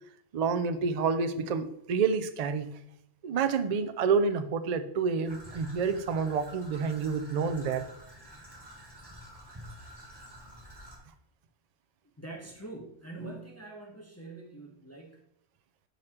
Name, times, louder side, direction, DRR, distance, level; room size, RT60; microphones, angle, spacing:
voice 1, 0.3-2.8 3.2-7.9, right 5 dB, 75° right, 10 dB, 0.3 m, -28 dB
Traffic noise roadway noise / Trickle dribble, 5.2-11.0, equal, 20° right, 1.2 m, -49 dB
voice 2, 12.2-15.3, right 2 dB, 15° left, -1 dB, 0.8 m, -44 dB
6.4 x 4.0 x 4.3 m, 0.77 s
omnidirectional pair, 1.3 m